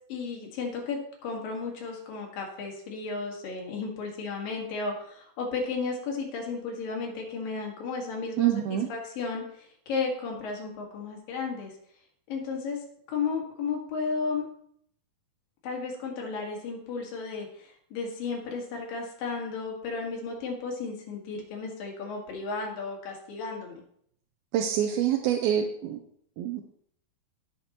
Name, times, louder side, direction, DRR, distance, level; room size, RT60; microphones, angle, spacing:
voice 1, 0.1-11.7 12.3-14.4 15.6-23.8, left 4 dB, 70° left, 0 dB, 3.3 m, -34 dB
voice 2, 8.4-8.9 24.5-26.0 26.4-26.6, right 10 dB, 90° right, 4 dB, 2.5 m, -26 dB
16.5 x 5.8 x 3.0 m, 0.68 s
omnidirectional pair, 4.2 m